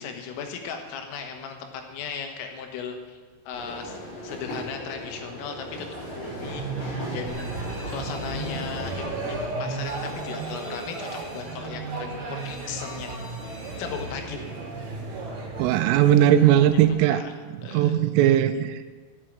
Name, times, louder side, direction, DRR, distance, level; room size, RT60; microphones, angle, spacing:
voice 1, 0.0-3.2 3.5-5.9 6.1-13.2 13.8-14.5 16.9-17.3 17.6-17.9 18.2-18.4, left 6 dB, 90° left, 4 dB, 3.9 m, -37 dB
sound 1, 3.5-9.4, left 1 dB, 45° left, 5.1 m, -38 dB
sound 2, 5.9-16.9, right 3 dB, 45° right, 3.0 m, -35 dB
Alarm, 7.3-15.0, right 1 dB, 30° left, 2.3 m, -43 dB
voice 2, 15.6-17.2 17.7-18.8, right 11 dB, 85° right, 11 dB, 3.1 m, -19 dB
11.0 x 7.6 x 8.9 m, 1.4 s
omnidirectional pair, 5.8 m